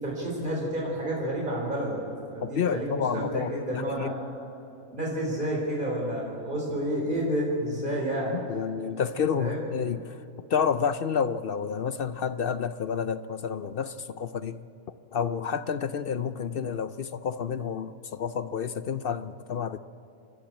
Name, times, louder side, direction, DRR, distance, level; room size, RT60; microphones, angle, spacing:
voice 1, 0.0-2.0 2.3-4.1 4.9-8.4 9.4-9.6, right 1 dB, 35° right, -2 dB, 4.5 m, -30 dB
voice 2, 2.4-4.1 8.3-10.2 10.5-14.6 15.1-19.8, left 7 dB, 60° left, 12 dB, 0.6 m, -29 dB
28.0 x 11.5 x 8.8 m, 2.9 s
omnidirectional pair, 1.5 m